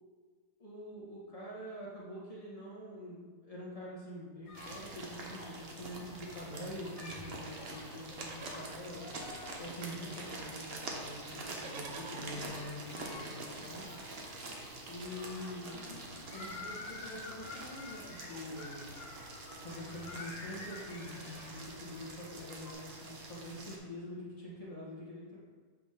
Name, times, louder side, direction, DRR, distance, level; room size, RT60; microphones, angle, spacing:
voice 1, 0.6-9.1 9.6-13.9 14.9-18.8 19.6-25.4, left 1 dB, 20° left, -7 dB, 1.6 m, -45 dB
sound 1, 4.5-22.7, left 3 dB, 90° left, 1.7 m, -51 dB
sound 2, 4.5-23.8, right 2 dB, 45° right, 0.8 m, -46 dB
Livestock farm animals working animals, 7.9-9.9 10.1-10.2 10.5-17.4 17.8-18.8 20.0-20.1 20.3-20.5 20.9-21.8 22.5-22.6, right 5 dB, 80° right, 1.3 m, -57 dB
7.8 x 4.2 x 3.7 m, 1.5 s
omnidirectional pair, 2.0 m